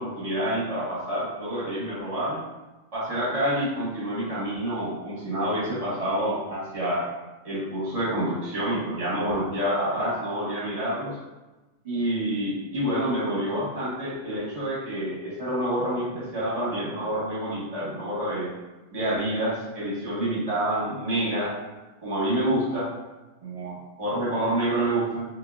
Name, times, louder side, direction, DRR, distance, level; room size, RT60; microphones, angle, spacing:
voice 1, 0.0-2.4 2.9-7.1 7.4-11.2 11.8-18.5 18.9-21.5 22.0-22.9 23.4-25.3, right 1 dB, 25° right, -8 dB, 1.3 m, -28 dB
3.8 x 3.0 x 2.4 m, 1.1 s
omnidirectional pair, 1.8 m